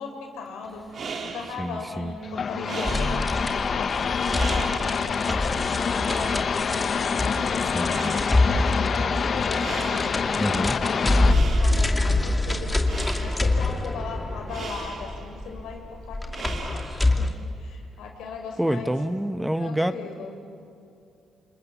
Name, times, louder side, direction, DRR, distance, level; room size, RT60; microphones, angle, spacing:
voice 1, 0.0-6.3 6.9-12.8 13.2-16.8 17.2-17.3 17.6-18.9 19.6-20.3, left 4 dB, 85° left, 2 dB, 5.8 m, -38 dB
sound 1, 0.7-17.3, right 4 dB, 50° right, 2.9 m, -40 dB
voice 2, 1.6-2.1 7.7-8.2 10.4-10.8 18.6-20.0, equal, 5° right, 10 dB, 1.1 m, -27 dB
sound 2, 2.2-11.3, left 6 dB, 45° left, 0.8 m, -26 dB
sound 3, 2.8-17.3, left 2 dB, 15° left, 2.2 m, -26 dB
29.0 x 27.5 x 7.5 m, 2.6 s
cardioid pair, 90°, 0 cm